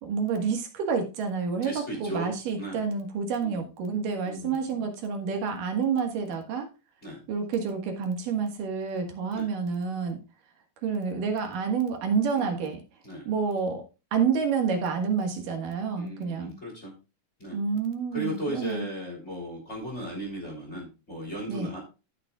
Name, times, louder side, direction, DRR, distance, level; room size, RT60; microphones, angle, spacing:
voice 1, 0.0-6.7 7.3-10.2 10.8-12.8 13.3-13.9 14.1-16.5 17.5-18.9 21.5-21.7, right 5 dB, 60° right, 4 dB, 2.8 m, -29 dB
voice 2, 1.6-2.3 2.6-2.8 3.4-3.7 4.2-4.6 7.0-7.2 9.3-9.5 12.3-12.6 13.0-13.3 15.9-16.9 17.4-17.6 18.1-21.8, right 1 dB, 20° left, -1 dB, 3.0 m, -36 dB
14.0 x 7.0 x 2.3 m, 0.30 s
omnidirectional pair, 4.7 m